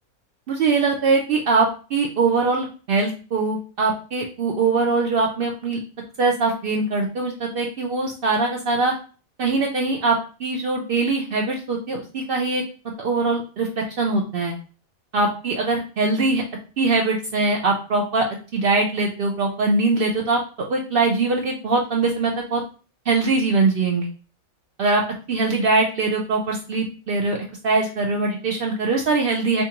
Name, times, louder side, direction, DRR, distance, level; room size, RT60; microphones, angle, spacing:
voice 1, 0.5-5.8 6.2-8.9 9.4-12.6 13.0-14.6 15.1-16.4 16.8-18.3 18.5-20.4 20.7-22.6 23.1-24.1 24.8-25.0 25.3-27.4 27.6-29.6, right 3 dB, 85° right, 0 dB, 0.5 m, -22 dB
4.3 x 2.3 x 2.8 m, 0.36 s
omnidirectional pair, 1.5 m